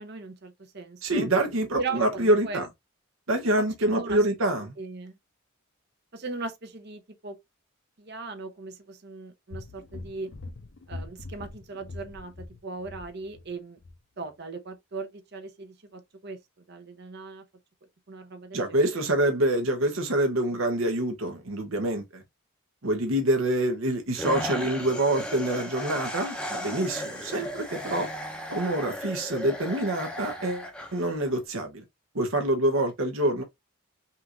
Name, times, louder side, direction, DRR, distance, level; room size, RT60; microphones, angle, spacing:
voice 1, 0.0-1.3 1.8-2.6 3.8-4.2 4.8-5.2 6.1-7.4 8.0-10.3 10.9-13.8 14.2-16.4 16.7-17.4 18.1-19.0, right 3 dB, 50° right, 0.8 m, -38 dB
voice 2, 1.0-2.7 3.3-4.7 18.5-22.2 22.8-28.1 28.5-31.8 32.1-33.4, right 1 dB, 70° right, 1.0 m, -26 dB
sound 1, 9.5-13.5 13.8-14.0, left 2 dB, 55° left, 0.6 m, -42 dB
sound 2, 24.1-31.4, left 1 dB, 5° left, 0.7 m, -36 dB
5.6 x 2.5 x 2.9 m
head